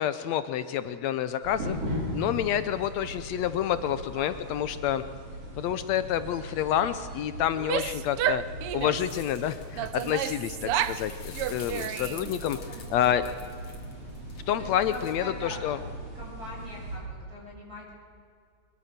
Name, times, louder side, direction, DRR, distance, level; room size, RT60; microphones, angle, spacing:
voice 1, 0.0-1.8 2.1-5.0 5.6-8.4 8.7-12.6 12.9-13.2 14.5-15.8, left 10 dB, 75° left, 12 dB, 1.8 m, -28 dB
sound 1, 1.4-17.0, equal, 50° right, 5.5 m, -39 dB
voice 2, 3.8-4.3 10.6-10.8 12.7-13.4 14.6-15.6 16.1-17.9, left 1 dB, 30° right, -4 dB, 7.7 m, -43 dB
Female speech woman speaking / Yell, 7.5-9.1 9.8-11.0 11.3-12.3, right 11 dB, 80° right, 1.3 m, -31 dB
sound 2, 9.1-15.2, left 4 dB, 50° left, 3.7 m, -45 dB
22.5 x 22.0 x 6.7 m, 2.3 s
omnidirectional pair, 3.4 m